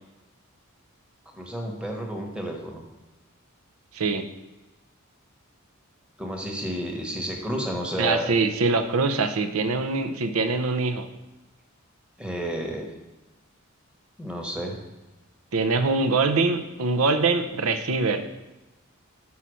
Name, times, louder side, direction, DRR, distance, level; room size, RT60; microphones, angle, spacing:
voice 1, 1.3-2.8 6.2-8.3 12.2-12.9 14.2-14.8, equal, 5° right, 1 dB, 1.1 m, -31 dB
voice 2, 3.9-4.2 8.0-11.1 15.5-18.2, right 3 dB, 85° right, 9 dB, 0.7 m, -23 dB
5.8 x 5.6 x 6.2 m, 1.1 s
head